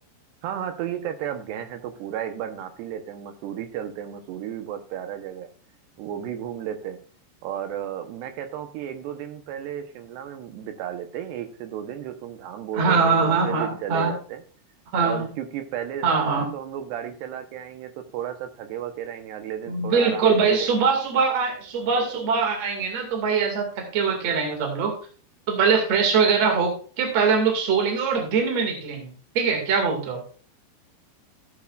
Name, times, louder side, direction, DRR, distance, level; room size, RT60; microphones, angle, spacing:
voice 1, 0.4-5.5 6.0-7.0 7.4-14.4 15.0-20.8, right 10 dB, 75° right, 7 dB, 3.0 m, -33 dB
voice 2, 12.7-14.1 14.9-15.2 16.0-16.4 19.7-24.9 25.5-30.2, right 5 dB, 45° right, 3 dB, 2.9 m, -22 dB
15.0 x 8.5 x 2.5 m, 0.40 s
omnidirectional pair, 5.1 m